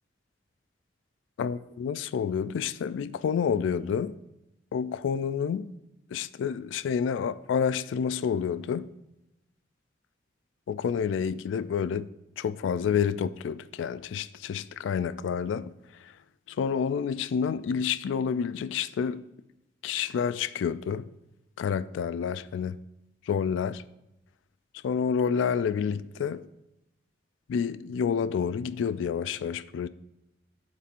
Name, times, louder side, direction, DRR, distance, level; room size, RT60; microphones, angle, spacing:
voice 1, 1.4-4.1 4.7-5.7 6.1-8.9 10.7-12.1 12.4-16.2 16.5-19.2 19.8-21.1 21.6-22.8 23.2-23.8 24.8-26.5 27.5-29.9, left 7 dB, 90° left, 0.3 m, -29 dB
11.5 x 4.3 x 2.5 m
head